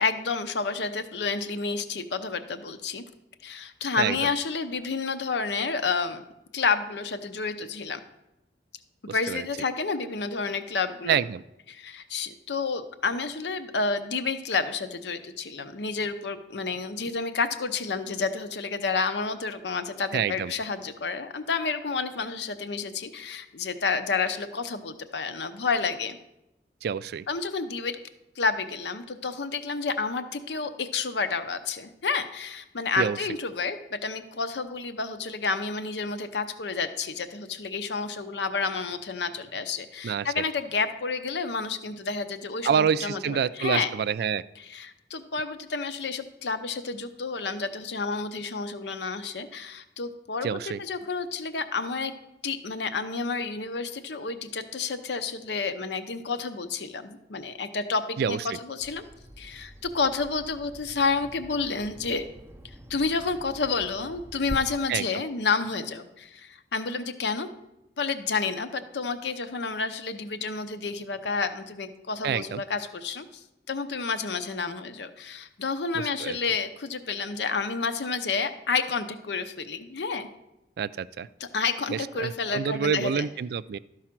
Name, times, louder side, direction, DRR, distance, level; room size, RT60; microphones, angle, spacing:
voice 1, 0.0-3.0 3.4-6.2 6.5-8.0 9.0-11.2 11.7-26.2 27.3-28.0 28.4-43.9 44.6-52.1 52.4-59.1 59.4-62.2 62.9-67.5 68.0-80.3 81.4-83.2, left 4 dB, 75° left, 10 dB, 0.7 m, -30 dB
voice 2, 11.0-11.4 20.1-20.5 26.8-27.2 33.0-33.2 40.0-40.4 42.6-44.4 50.4-50.8 58.2-58.4 64.9-65.2 72.2-72.6 75.9-76.4 80.8-81.3 81.9-83.8, right 7 dB, 60° right, 17 dB, 0.3 m, -27 dB
Bird vocalization bird call bird song, 58.8-64.5, equal, 15° right, 0.6 m, -45 dB
12.5 x 4.9 x 5.9 m, 0.89 s
head